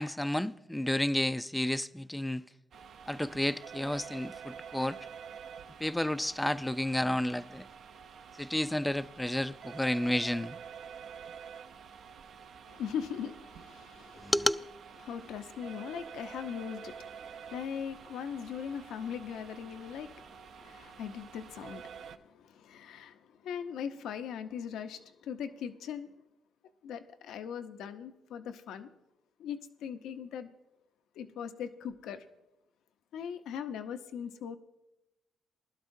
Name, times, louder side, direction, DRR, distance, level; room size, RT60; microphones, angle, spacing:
voice 1, 0.0-2.4 3.1-5.0 5.8-7.6 8.4-10.6 14.3-14.6, left 1 dB, 5° left, 0.4 m, -31 dB
sound 1, 2.7-22.2, right 7 dB, 65° right, 0.6 m, -48 dB
voice 2, 12.7-14.3 15.0-26.1 26.8-28.9 29.4-30.5 31.1-32.3 33.1-34.6, left 8 dB, 80° left, 0.7 m, -40 dB
20.5 x 12.0 x 2.6 m
cardioid pair, 90°, 0 cm